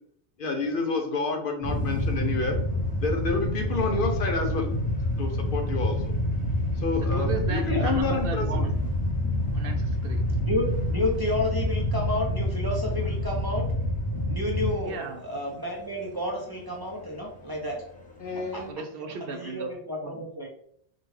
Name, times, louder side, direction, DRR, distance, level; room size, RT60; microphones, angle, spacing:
voice 1, 0.4-2.6 3.0-4.7 5.2-6.0 6.8-8.6 18.2-18.7, left 3 dB, 60° left, 4 dB, 0.7 m, -29 dB
sound 1, 1.6-15.1 15.3-15.5 16.3-16.5 17.1-17.3 18.4-18.6, left 1 dB, 10° left, 0.7 m, -27 dB
voice 2, 7.0-8.7 9.5-10.2 14.8-15.2 18.7-19.7 20.0-20.2, right 4 dB, 65° right, 6 dB, 0.7 m, -35 dB
voice 3, 10.4-13.7 14.3-17.8 18.4-18.6 19.2-20.5, left 1 dB, 30° right, -2 dB, 0.5 m, -31 dB
5.0 x 2.3 x 3.1 m, 0.66 s
omnidirectional pair, 1.1 m